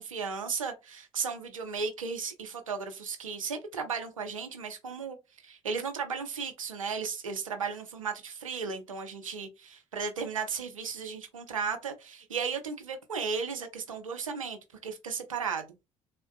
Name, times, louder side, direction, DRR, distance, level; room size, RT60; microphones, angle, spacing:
voice 1, 0.0-5.2 5.4-15.7, right 5 dB, 90° right, 0.5 m, -35 dB
3.5 x 2.2 x 2.3 m
figure-of-eight pair, 50°, 17 cm